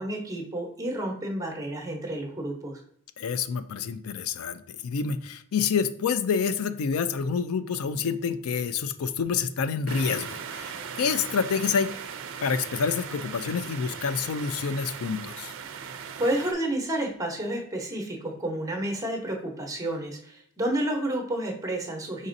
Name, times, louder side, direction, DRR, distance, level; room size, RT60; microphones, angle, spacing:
voice 1, 0.0-2.8 16.2-22.3, right 1 dB, 15° right, 1 dB, 0.8 m, -30 dB
voice 2, 3.2-10.7 11.0-11.9 12.4-15.5, left 6 dB, 75° left, 13 dB, 0.4 m, -28 dB
sound 1, 9.9-16.5, right 7 dB, 60° right, 0.4 m, -38 dB
5.1 x 4.0 x 2.5 m, 0.68 s
head